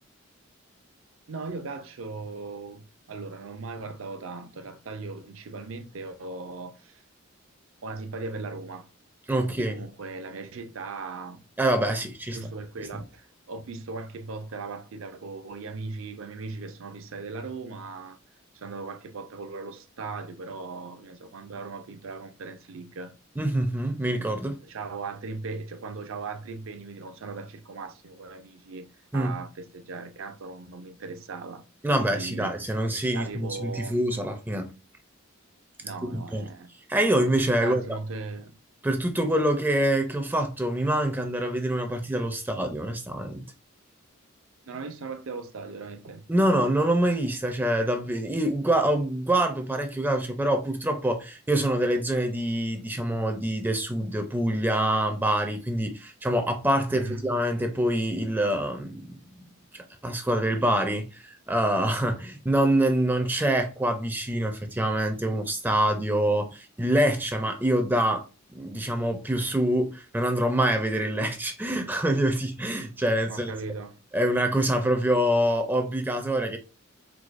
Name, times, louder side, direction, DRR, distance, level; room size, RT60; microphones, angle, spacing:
voice 1, 1.3-7.0 7.8-8.9 9.4-11.4 12.3-18.2 18.5-23.1 24.6-28.9 29.1-31.6 32.0-32.6 33.1-34.0 35.8-36.7 37.6-38.6 44.7-46.3 56.9-57.3 73.3-74.0, right 3 dB, 70° right, 0.5 m, -38 dB
voice 2, 9.3-9.8 11.6-12.4 23.4-24.6 29.1-29.3 31.8-34.7 36.0-36.5 36.9-37.8 38.8-43.5 46.3-59.4 59.7-68.2 68.5-73.5 74.1-76.6, right 1 dB, 10° right, 0.4 m, -25 dB
4.6 x 2.2 x 2.4 m
head